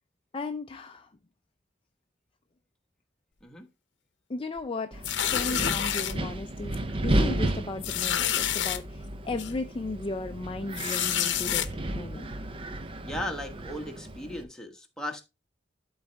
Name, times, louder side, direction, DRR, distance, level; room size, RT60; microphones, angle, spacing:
voice 1, 0.3-1.1 4.3-12.3, left 3 dB, 30° left, 0.5 m, -36 dB
Wind, 4.9-14.4, right 1 dB, 30° right, 0.6 m, -33 dB
sound 1, 5.0-6.1 6.7-6.9 7.2-7.3 7.8-8.8 9.4-9.5 10.7-11.7, left 10 dB, 80° left, 0.7 m, -28 dB
voice 2, 13.0-15.2, left 1 dB, 5° left, 1.2 m, -36 dB
12.0 x 4.0 x 3.3 m
head